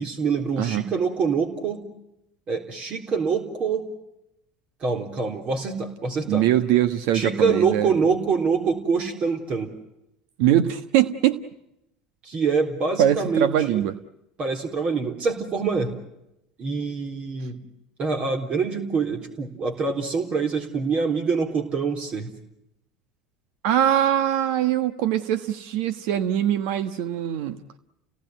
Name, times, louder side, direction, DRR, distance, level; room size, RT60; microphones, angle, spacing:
voice 1, 0.0-1.8 2.5-3.8 4.8-6.5 7.1-9.7 12.2-13.8 14.4-15.9 16.6-17.6 18.0-22.3, right 5 dB, 45° right, 3 dB, 3.7 m, -25 dB
voice 2, 6.3-7.9 10.4-11.4 13.0-14.0 23.6-27.6, right 11 dB, 70° right, 11 dB, 1.3 m, -22 dB
29.5 x 18.0 x 9.3 m, 0.87 s
hypercardioid pair, 80°, 3 cm